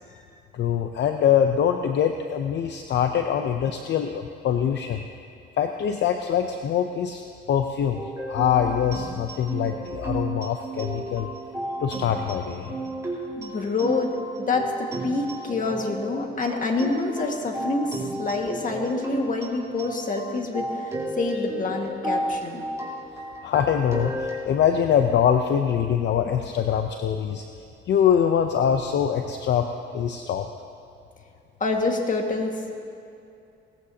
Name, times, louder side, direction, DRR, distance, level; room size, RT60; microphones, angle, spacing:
voice 1, 0.5-5.0 5.6-8.0 8.3-11.3 11.8-12.7 23.4-27.4 27.9-30.5, left 8 dB, 65° left, 5 dB, 0.7 m, -23 dB
sound 1, 7.9-24.5, right 1 dB, 15° right, 3.6 m, -33 dB
voice 2, 13.4-22.6 31.6-32.8, left 3 dB, 40° left, 2 dB, 1.9 m, -27 dB
19.0 x 14.5 x 2.9 m, 2.6 s
cardioid pair, 90°, 20 cm